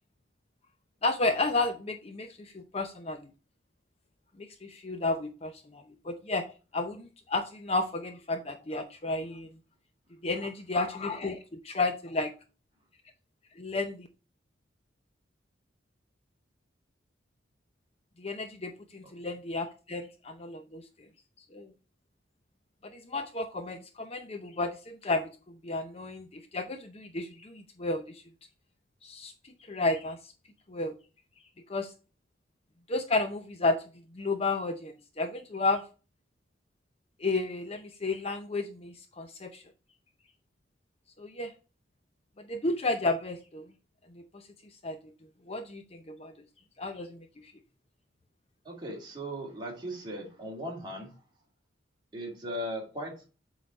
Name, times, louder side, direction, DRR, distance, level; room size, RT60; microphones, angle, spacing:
voice 1, 1.0-3.3 4.4-6.4 6.7-9.6 10.2-11.4 11.6-12.3 13.6-14.1 18.2-21.1 21.5-21.7 22.8-28.2 29.0-30.2 30.7-31.0 31.7-31.9 32.9-33.8 34.1-35.8 37.2-39.6 41.2-41.5 42.4-43.7 44.1-44.5 44.8-45.0 45.5-46.3 46.8-47.5, left 2 dB, 30° left, 7 dB, 0.6 m, -32 dB
voice 2, 48.6-51.2 52.1-53.2, equal, 25° right, -2 dB, 2.6 m, -38 dB
7.7 x 4.0 x 4.0 m, 0.33 s
head